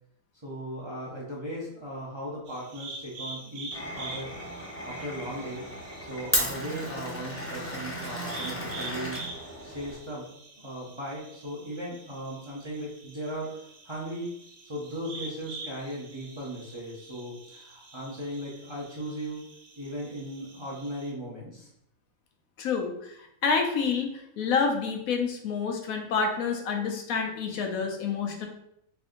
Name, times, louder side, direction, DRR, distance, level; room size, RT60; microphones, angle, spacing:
voice 1, 0.4-4.3 4.8-5.6 6.0-9.2 9.6-10.3 10.6-13.5 13.8-14.3 14.6-19.4 19.8-21.7, equal, 30° right, -5 dB, 0.6 m, -37 dB
sound 1, 2.5-21.1, right 3 dB, 70° right, 1.1 m, -46 dB
Glass, 3.7-10.0, left 1 dB, 20° left, 0.4 m, -35 dB
voice 2, 22.6-22.9 23.4-28.5, left 5 dB, 85° left, 4 dB, 1.1 m, -28 dB
3.3 x 2.6 x 3.7 m, 0.76 s
omnidirectional pair, 1.4 m